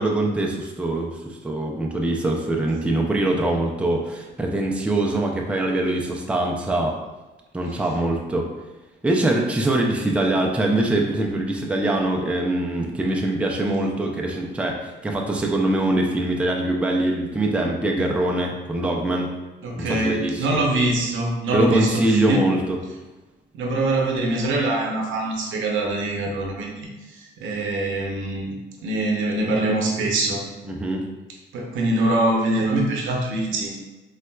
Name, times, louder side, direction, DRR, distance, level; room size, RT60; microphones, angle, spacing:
voice 1, 0.0-7.0 7.5-8.5 9.0-19.3 19.8-20.6 21.5-22.8 30.7-31.1, right 1 dB, 5° right, 0 dB, 0.4 m, -23 dB
voice 2, 19.6-22.5 23.5-28.5 28.8-30.4 31.5-33.7, right 2 dB, 80° right, 0 dB, 0.7 m, -24 dB
4.0 x 2.3 x 2.2 m, 1.2 s
cardioid pair, 90°, 20 cm